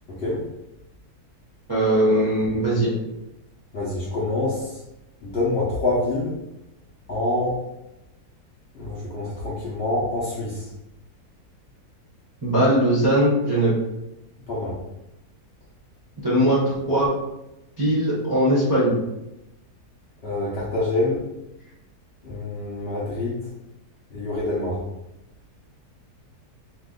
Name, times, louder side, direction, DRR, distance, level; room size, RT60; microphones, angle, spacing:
voice 1, 1.7-2.9 12.4-13.7 16.2-17.1 17.8-19.0, right 1 dB, 25° right, -8 dB, 0.5 m, -20 dB
voice 2, 3.7-4.8 5.2-6.3 7.1-7.6 8.7-10.7 14.5-14.8 20.2-21.2 22.2-23.4 24.1-24.8, left 2 dB, 55° left, -7 dB, 0.7 m, -26 dB
2.7 x 2.5 x 3.6 m, 0.92 s
omnidirectional pair, 1.7 m